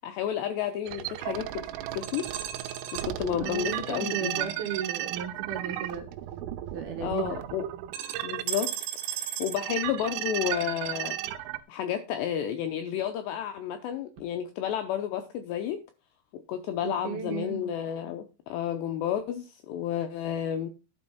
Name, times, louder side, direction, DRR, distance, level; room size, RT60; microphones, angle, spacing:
voice 1, 0.0-2.3 2.9-4.5 7.0-7.7 8.2-8.7 9.1-11.2 11.7-15.8 16.3-20.7, left 10 dB, 90° left, 8 dB, 2.5 m, -31 dB
sound 1, 0.9-11.6, right 13 dB, 80° right, 3.4 m, -34 dB
voice 2, 3.4-6.1 6.7-7.4 16.8-17.6, right 7 dB, 65° right, 3 dB, 2.7 m, -35 dB
12.0 x 5.5 x 5.8 m, 0.30 s
omnidirectional pair, 5.9 m